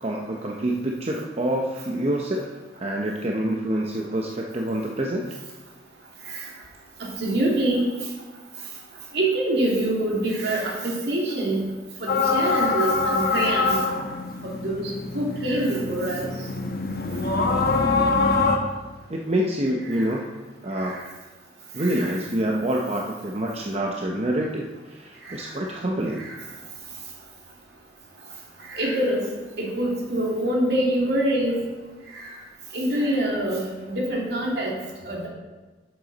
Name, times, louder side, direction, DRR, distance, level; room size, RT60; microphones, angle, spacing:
voice 1, 0.0-5.3 19.1-20.3 20.6-21.0 21.7-26.3, right 1 dB, 35° right, 0 dB, 0.7 m, -27 dB
voice 2, 7.0-8.1 9.1-11.7 12.0-13.8 14.4-16.3 19.9-20.1 20.8-21.0 21.8-22.2 25.2-25.5 26.2-26.4 28.7-29.2 29.6-31.6 32.1-32.3 32.7-34.8 35.0-35.3, right 1 dB, 65° right, -3 dB, 2.5 m, -25 dB
sound 1, 12.1-18.6, left 4 dB, 60° left, 1.0 m, -24 dB
11.0 x 7.8 x 4.1 m, 1.3 s
head